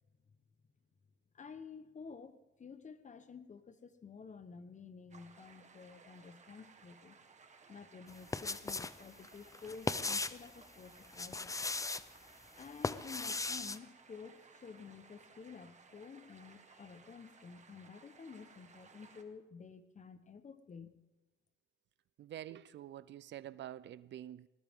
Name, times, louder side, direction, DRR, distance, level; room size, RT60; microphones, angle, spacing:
voice 1, 1.3-7.2 7.7-11.6 12.5-21.0, left 5 dB, 40° left, 12 dB, 1.2 m, -51 dB
sound 1, 5.1-19.2, right 5 dB, 35° right, 1.6 m, -61 dB
sound 2, 8.1-9.0 9.2-10.5 11.0-12.0 12.6-13.8, left 3 dB, 15° left, 0.6 m, -37 dB
voice 2, 22.2-24.5, right 12 dB, 65° right, 18 dB, 0.6 m, -47 dB
20.0 x 19.0 x 3.7 m, 1.1 s
cardioid pair, 90°, 20 cm